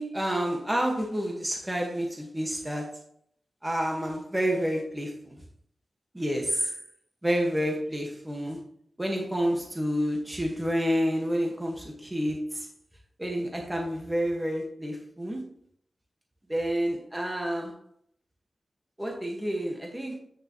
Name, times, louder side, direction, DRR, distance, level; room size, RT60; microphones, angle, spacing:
voice 1, 0.0-3.0 3.6-5.4 6.1-6.7 7.2-8.7 9.0-12.7 13.2-15.4 16.5-17.8 19.0-20.2, equal, 15° right, 0 dB, 1.7 m, -29 dB
9.1 x 6.4 x 3.1 m, 0.64 s
wide cardioid pair, 100°, 0 cm